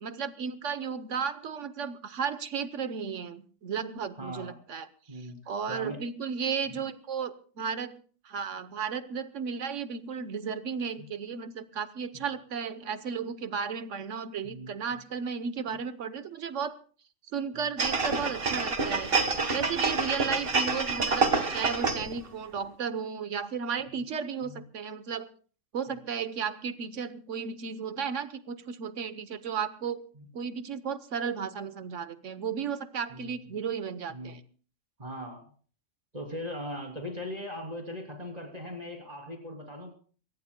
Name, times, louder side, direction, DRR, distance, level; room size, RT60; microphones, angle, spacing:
voice 1, 0.0-4.9 5.5-8.0 8.2-16.8 17.3-19.1 19.5-25.3 25.7-30.0 30.3-34.4, right 6 dB, 75° right, 13 dB, 1.3 m, -34 dB
voice 2, 4.2-4.6 5.1-6.0 6.7-6.8 11.0-11.1 12.1-12.2 14.4-15.0 23.9-24.0 24.4-24.6 30.1-30.2 33.1-33.4 34.1-34.4 35.0-35.4 36.1-39.9, left 1 dB, 30° right, 1 dB, 3.3 m, -40 dB
sound 1, 17.8-22.2 22.6-22.7, right 4 dB, 50° right, 1.8 m, -27 dB
23.0 x 19.0 x 2.2 m, 0.41 s
omnidirectional pair, 1.3 m